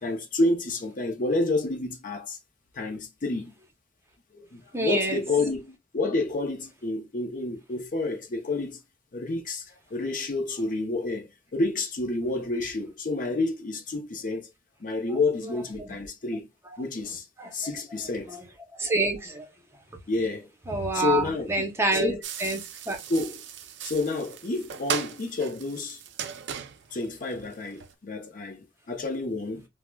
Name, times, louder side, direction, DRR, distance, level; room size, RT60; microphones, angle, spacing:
voice 1, 0.0-2.4 2.7-3.5 4.3-8.8 9.1-14.5 14.8-16.5 16.8-17.3 17.5-18.4 20.1-20.5 20.9-21.7 21.9-22.2 23.1-23.4 23.8-26.0 26.9-29.7, left 2 dB, 45° left, 0.5 m, -29 dB
voice 2, 4.7-5.2 15.1-15.5 15.8-16.0 17.4-17.5 18.3-18.5 18.7-19.5 20.7-23.0, right 2 dB, 15° right, 0.6 m, -28 dB
sound 1, 22.2-27.9, right 8 dB, 70° right, 0.4 m, -37 dB
4.5 x 2.0 x 2.2 m
head